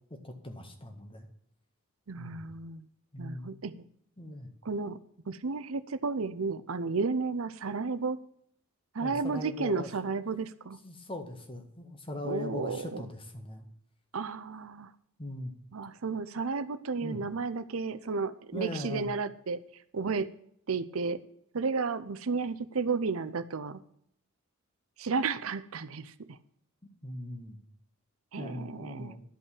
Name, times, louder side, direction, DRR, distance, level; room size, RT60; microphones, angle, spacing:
voice 1, 0.1-1.3 2.2-2.5 3.1-3.5 4.2-4.5 9.0-9.9 10.8-13.6 15.2-15.5 17.0-17.2 18.5-19.1 27.0-27.6 28.4-29.2, left 1 dB, 25° left, 6 dB, 1.7 m, -40 dB
voice 2, 2.1-2.9 3.2-3.9 4.6-5.0 5.3-8.2 8.9-10.8 12.2-13.0 14.1-14.9 15.7-19.6 19.9-20.3 20.7-21.2 21.5-23.8 25.0-26.4 28.3-29.1, right 4 dB, 75° right, 13 dB, 0.7 m, -33 dB
11.5 x 5.4 x 8.4 m, 0.70 s
head